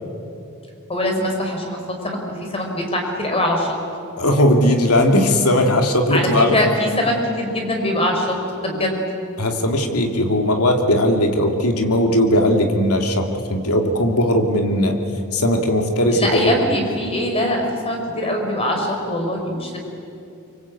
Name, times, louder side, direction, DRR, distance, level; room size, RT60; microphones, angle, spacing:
voice 1, 0.9-3.7 6.1-8.3 8.6-9.0 16.1-19.8, left 1 dB, 25° left, 2 dB, 4.7 m, -22 dB
voice 2, 4.2-6.6 9.4-15.0 15.3-16.6, left 1 dB, 85° left, 3 dB, 2.7 m, -18 dB
25.5 x 24.0 x 8.5 m, 2.7 s
head